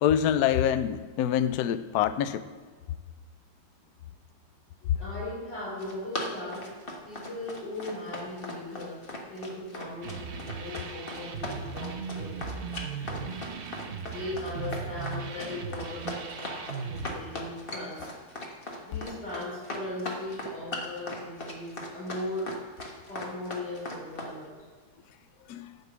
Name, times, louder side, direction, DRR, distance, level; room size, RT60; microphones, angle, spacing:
voice 1, 0.0-2.4 25.5-25.7, left 10 dB, 75° left, 12 dB, 0.9 m, -25 dB
voice 2, 5.0-6.7 7.0-12.4 12.8-13.3 14.0-18.1 18.8-22.5 23.1-24.6, left 1 dB, 55° left, -7 dB, 4.7 m, -38 dB
Run, 5.6-24.3, left 1 dB, 30° left, 1.3 m, -38 dB
sound 1, 10.0-17.1, right 5 dB, 65° right, 0.6 m, -38 dB
12.0 x 5.6 x 7.9 m, 1.5 s
omnidirectional pair, 2.2 m